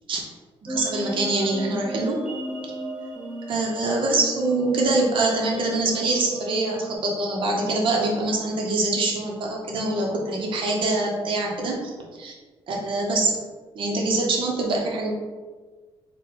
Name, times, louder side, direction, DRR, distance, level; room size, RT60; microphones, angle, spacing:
voice 1, 0.6-2.2 3.5-12.3 12.7-13.3 13.7-15.1, right 2 dB, 55° right, -1 dB, 0.7 m, -24 dB
sound 1, 0.7-7.0, right 1 dB, 10° right, 0.6 m, -35 dB
4.0 x 2.1 x 3.8 m, 1.4 s
cardioid pair, 135°, 10 cm